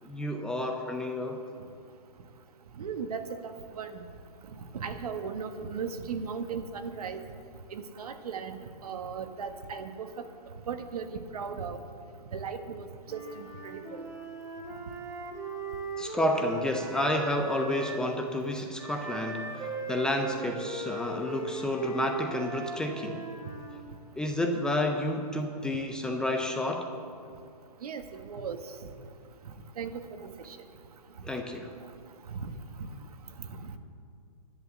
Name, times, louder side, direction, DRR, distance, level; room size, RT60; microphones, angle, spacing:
voice 1, 0.0-1.4 16.0-23.3 24.2-26.9 31.2-31.7, left 1 dB, 5° left, 4 dB, 0.5 m, -30 dB
voice 2, 2.8-4.0 4.7-7.2 7.7-10.3 10.7-11.8 12.3-14.1 27.8-28.6 29.8-30.6 32.3-32.5 33.4-33.7, right 6 dB, 70° right, 7 dB, 1.4 m, -37 dB
Wind instrument woodwind instrument, 13.0-18.1 18.8-23.7, right 3 dB, 15° right, 1.7 m, -38 dB
11.0 x 10.5 x 7.4 m, 2.3 s
hypercardioid pair, 155°, 20 cm